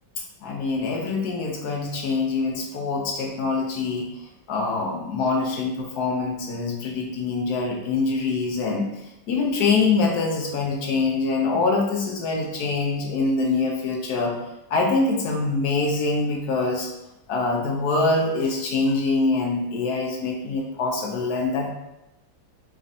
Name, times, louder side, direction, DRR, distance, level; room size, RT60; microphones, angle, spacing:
voice 1, 0.4-4.1 4.5-8.9 9.3-14.4 14.7-16.9 17.3-21.7, left 3 dB, 65° left, 0 dB, 1.0 m, -24 dB
4.8 x 3.1 x 2.6 m, 0.92 s
omnidirectional pair, 2.1 m